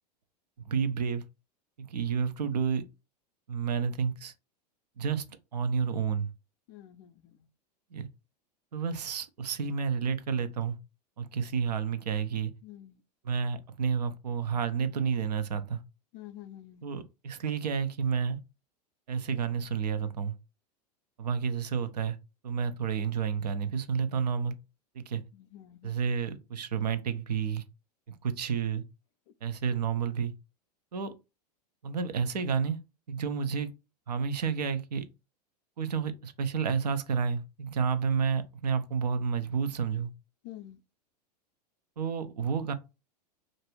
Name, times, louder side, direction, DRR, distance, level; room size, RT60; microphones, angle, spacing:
voice 1, 0.7-1.2 1.8-2.8 3.5-4.3 5.0-5.3 5.5-6.3 7.9-8.1 8.7-10.8 11.2-12.5 13.2-15.8 16.8-18.4 19.1-20.3 21.2-22.2 22.4-24.5 24.9-25.2 25.8-27.6 28.1-28.8 29.4-30.3 30.9-31.1 31.8-32.8 33.1-33.7 34.1-35.0 35.8-40.1 42.0-42.7, right 6 dB, 75° right, 0.5 m, -30 dB
voice 2, 6.7-7.4 12.6-13.0 16.1-16.8 25.1-25.9 40.4-40.8, left 13 dB, 45° left, 0.4 m, -48 dB
2.5 x 2.3 x 3.0 m
figure-of-eight pair, 90°, 21 cm